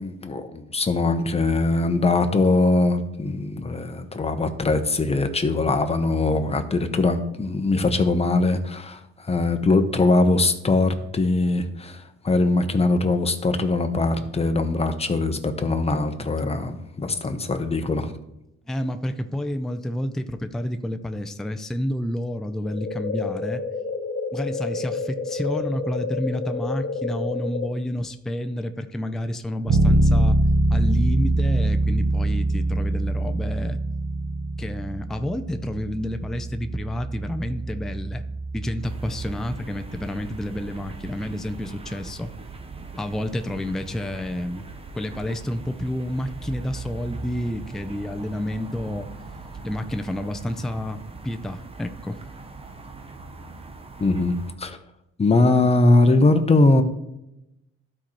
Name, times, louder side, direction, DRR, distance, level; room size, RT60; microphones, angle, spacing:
voice 1, 0.0-18.1 54.0-54.8 55.2-56.8, left 2 dB, 20° left, 7 dB, 0.8 m, -21 dB
voice 2, 18.7-23.6 24.3-30.4 30.7-33.8 34.6-38.2 38.5-42.3 43.0-44.7 44.9-49.1 49.6-52.2, left 1 dB, ahead, 8 dB, 0.4 m, -29 dB
sound 1, 22.6-27.7, left 4 dB, 45° left, 1.2 m, -29 dB
Bass guitar, 29.7-39.5, right 2 dB, 60° right, 1.1 m, -24 dB
sound 2, 38.8-54.6, right 3 dB, 20° right, 0.8 m, -40 dB
12.5 x 4.3 x 3.1 m, 0.88 s
cardioid pair, 90°, 30 cm